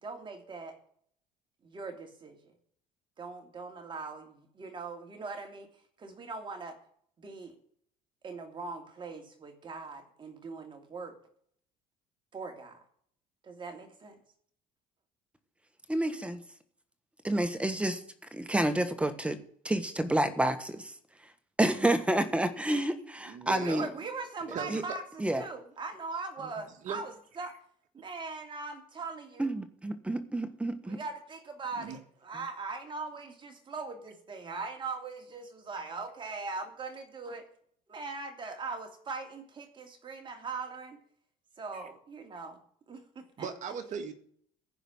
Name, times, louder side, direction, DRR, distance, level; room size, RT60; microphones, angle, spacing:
voice 1, 0.0-0.8 1.6-2.6 3.2-5.7 6.0-6.8 7.2-7.6 8.2-11.2 12.3-12.8 13.4-14.2 23.6-27.6 27.9-29.5 30.8-37.5 37.9-41.0 41.6-42.6 42.9-43.5, right 4 dB, 30° right, 4 dB, 2.8 m, -41 dB
voice 2, 15.9-16.4 17.2-18.0 18.3-19.4 19.6-20.9 21.6-23.9 24.7-24.8 25.2-25.4 29.4-31.0, right 1 dB, 5° right, 9 dB, 1.4 m, -29 dB
voice 3, 23.3-24.0 24.5-24.8 26.4-26.5 26.8-27.0 31.8-32.0 41.7-41.8 43.4-44.1, right 7 dB, 50° right, 6 dB, 1.9 m, -38 dB
15.0 x 5.1 x 8.9 m, 0.62 s
cardioid pair, 115°, 16 cm